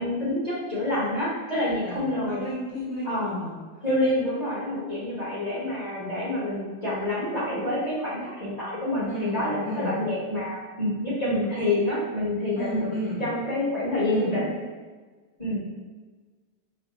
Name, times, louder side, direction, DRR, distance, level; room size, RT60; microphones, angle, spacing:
voice 1, 0.0-2.4 3.0-3.3 3.8-12.9 13.2-14.5 15.4-15.6, left 1 dB, 25° left, -9 dB, 0.9 m, -27 dB
voice 2, 2.3-3.6 9.0-10.0 12.6-13.2 14.1-14.4, equal, 85° left, -8 dB, 0.6 m, -32 dB
3.3 x 2.9 x 4.2 m, 1.4 s
omnidirectional pair, 2.4 m